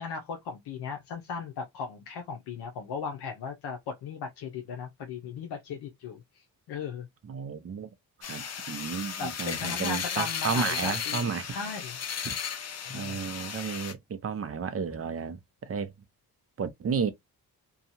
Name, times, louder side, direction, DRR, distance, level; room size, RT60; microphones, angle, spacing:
voice 1, 0.0-7.1 9.2-12.0 12.9-13.3, left 5 dB, 80° left, 0.7 m, -37 dB
voice 2, 7.2-7.9 8.2-11.5 12.2-12.3 12.9-15.9 16.6-17.1, right 6 dB, 35° right, 0.6 m, -33 dB
sound 1, 8.2-13.9, left 7 dB, 40° left, 0.6 m, -35 dB
2.8 x 2.3 x 2.6 m
cardioid pair, 90°, 39 cm